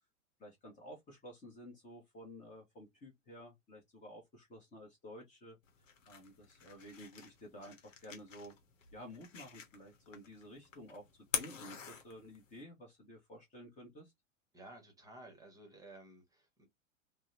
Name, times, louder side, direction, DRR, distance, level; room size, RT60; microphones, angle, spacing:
voice 1, 0.4-5.6 6.1-8.5 8.9-11.1 11.3-14.1, equal, 20° left, 0.9 m, -52 dB
sound 1, 5.6-12.6, left 6 dB, 75° left, 0.9 m, -46 dB
voice 2, 14.5-16.6, right 2 dB, 10° right, 1.0 m, -54 dB
2.7 x 2.1 x 2.4 m
figure-of-eight pair, 100°, 39 cm